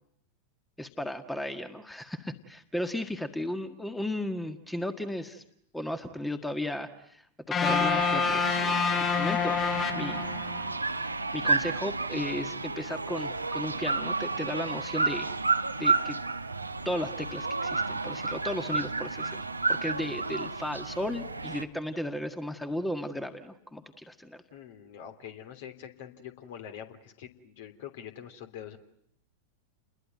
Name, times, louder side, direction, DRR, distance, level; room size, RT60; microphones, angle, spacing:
voice 1, 0.8-5.4 5.7-9.6 9.9-10.2 11.0-15.3 15.8-16.2 16.8-24.4, left 1 dB, 5° left, 8 dB, 1.7 m, -35 dB
sound 1, 7.5-10.7, left 6 dB, 20° left, 1.1 m, -27 dB
sound 2, 7.6-21.6, right 3 dB, 80° right, 1.1 m, -31 dB
voice 2, 24.5-28.8, left 9 dB, 55° left, 7 dB, 3.1 m, -44 dB
30.0 x 21.5 x 9.3 m, 0.75 s
figure-of-eight pair, 90°, 0 cm